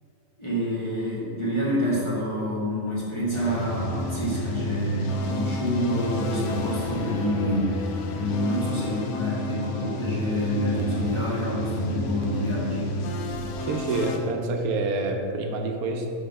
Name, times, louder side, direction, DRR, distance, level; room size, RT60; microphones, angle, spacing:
voice 1, 0.4-7.7 8.1-12.9, equal, 20° left, -7 dB, 1.1 m, -27 dB
sound 1, 3.3-14.2, left 1 dB, 90° left, 1.1 m, -31 dB
voice 2, 13.6-16.1, right 3 dB, 80° right, 4 dB, 1.1 m, -27 dB
5.6 x 3.7 x 5.2 m, 2.5 s
omnidirectional pair, 1.5 m